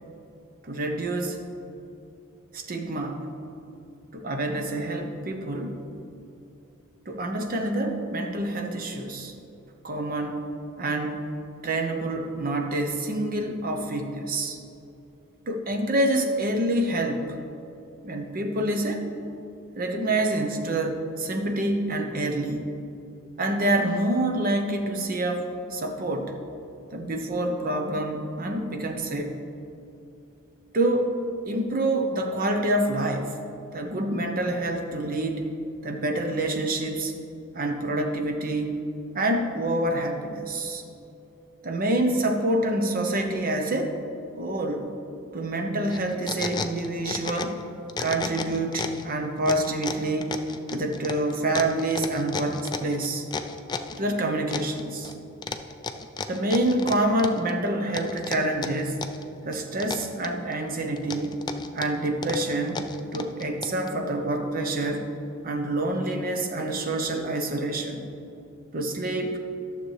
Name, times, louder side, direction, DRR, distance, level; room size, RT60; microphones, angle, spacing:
voice 1, 0.7-1.4 2.5-3.2 4.1-5.8 7.1-9.3 9.8-10.4 10.8-11.3 11.6-14.6 15.5-17.4 18.0-19.0 19.8-22.7 23.4-26.3 26.9-29.4 30.7-31.2 31.5-33.4 33.7-35.5 35.8-37.1 37.5-38.8 39.1-40.8 41.6-43.9 44.4-44.9 45.3-47.6 48.0-50.3 50.7-53.3 54.0-55.1 56.3-59.0 59.4-61.3 61.7-62.8 63.1-65.1 65.4-68.0 68.7-69.4, right 1 dB, 45° right, 4 dB, 0.8 m, -27 dB
sound 1, 45.9-47.6 47.9-49.1 49.5-54.0 54.5-55.1 55.4-57.5 57.9-59.3 59.5-60.5 61.0-63.9, left 4 dB, 20° left, 0.3 m, -33 dB
11.5 x 6.7 x 3.3 m, 2.8 s
head